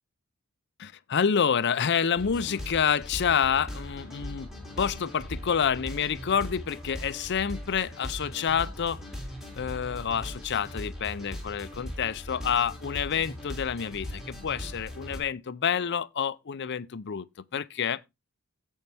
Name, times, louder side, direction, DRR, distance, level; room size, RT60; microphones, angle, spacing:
voice 1, 0.8-4.5 4.8-9.0 9.5-17.3 17.5-18.0, left 7 dB, 50° left, 0.6 m, -28 dB
sound 1, 2.2-15.2, left 1 dB, ahead, 3.1 m, -40 dB
16.0 x 5.4 x 3.4 m
head